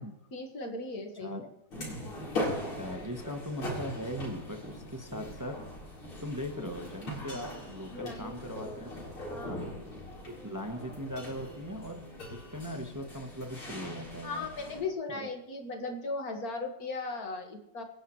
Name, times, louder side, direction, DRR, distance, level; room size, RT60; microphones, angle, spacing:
voice 1, 0.3-1.5 7.9-8.3 8.7-8.8 9.3-9.8 14.2-17.8, left 3 dB, 45° left, 3 dB, 2.0 m, -37 dB
sound 1, 1.7-14.8, left 1 dB, 85° left, 4.8 m, -40 dB
voice 2, 2.8-5.6 6.2-8.9 9.5-9.8 10.3-14.5 15.1-15.3, equal, 25° right, 4 dB, 0.4 m, -39 dB
25.0 x 10.0 x 3.1 m, 0.82 s
omnidirectional pair, 2.3 m